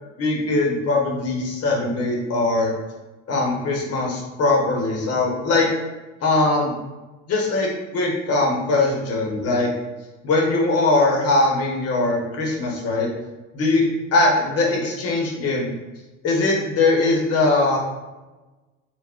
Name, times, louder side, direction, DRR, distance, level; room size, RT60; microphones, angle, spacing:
voice 1, 0.2-2.7 3.3-5.7 6.2-6.7 7.3-9.7 10.2-13.1 13.5-13.8 14.1-15.7 16.2-17.8, left 2 dB, 40° left, -1 dB, 0.9 m, -21 dB
2.4 x 2.0 x 3.5 m, 1.2 s
supercardioid pair, 95°, 37 cm